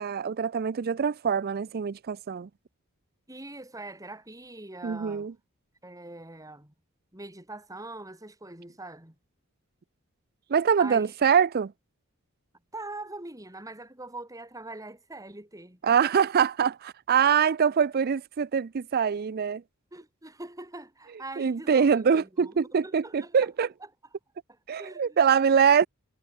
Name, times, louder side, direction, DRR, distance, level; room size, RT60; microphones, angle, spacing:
voice 1, 0.0-2.5 4.8-5.3 10.5-11.7 15.8-19.6 21.4-23.7 24.7-25.9, right 7 dB, 45° right, 0.4 m, -24 dB
voice 2, 3.3-5.3 5.8-6.7 7.1-9.2 10.8-11.1 12.7-16.1 19.9-23.7 24.5-25.3, right 2 dB, 15° right, 3.9 m, -43 dB
head